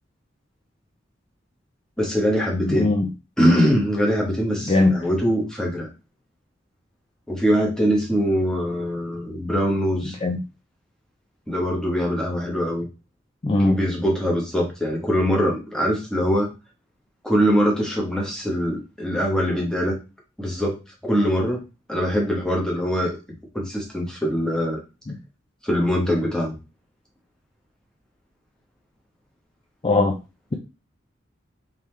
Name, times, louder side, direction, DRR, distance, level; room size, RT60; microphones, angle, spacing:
voice 1, 2.0-2.9 3.4-5.9 7.3-10.2 11.5-12.9 13.6-16.5 17.2-20.0 20.4-20.8 21.1-21.6 21.9-23.2 23.5-24.8 25.6-26.6, equal, 5° left, -2 dB, 1.1 m, -22 dB
voice 2, 2.7-3.1 4.7-4.9 10.2-10.4 13.4-13.8 29.8-30.2, left 2 dB, 30° left, 2 dB, 0.4 m, -19 dB
3.7 x 3.0 x 3.2 m, 0.28 s
head